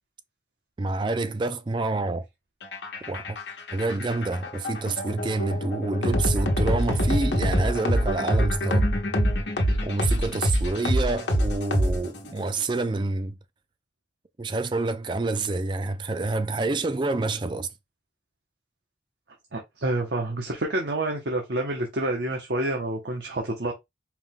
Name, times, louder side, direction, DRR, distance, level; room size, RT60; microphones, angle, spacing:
voice 1, 0.8-2.3 3.1-3.4 3.7-8.9 9.8-13.4 14.4-17.7, right 3 dB, 25° right, 0.4 m, -28 dB
sound 1, 2.6-12.4, equal, 85° left, 1.0 m, -25 dB
voice 2, 19.5-23.7, right 1 dB, 75° right, 0.8 m, -28 dB
4.6 x 2.3 x 3.6 m
head